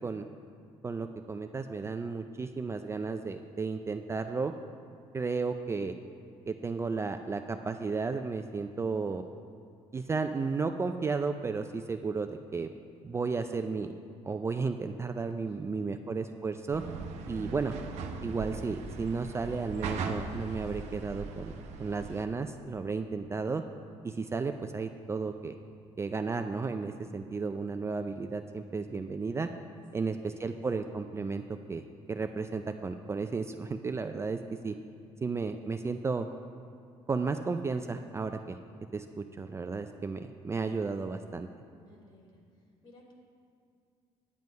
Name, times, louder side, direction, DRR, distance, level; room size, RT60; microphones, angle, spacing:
voice 1, 0.8-4.5 5.1-5.9 6.5-9.2 9.9-12.7 13.0-13.9 14.2-16.8 17.3-17.7 18.2-21.5 21.8-23.6 24.0-25.5 26.0-29.5 29.9-31.4 31.7-34.8 35.2-36.3 37.1-38.6 38.9-41.5, right 4 dB, 25° right, 6 dB, 0.4 m, -33 dB
voice 2, 15.4-16.1 29.7-30.6 41.8-42.4 42.8-43.1, left 1 dB, 45° left, -2 dB, 2.7 m, -59 dB
sound 1, 16.7-22.2, right 4 dB, 80° right, 0.8 m, -39 dB
9.6 x 7.5 x 5.2 m, 2.4 s
cardioid pair, 95°, 12 cm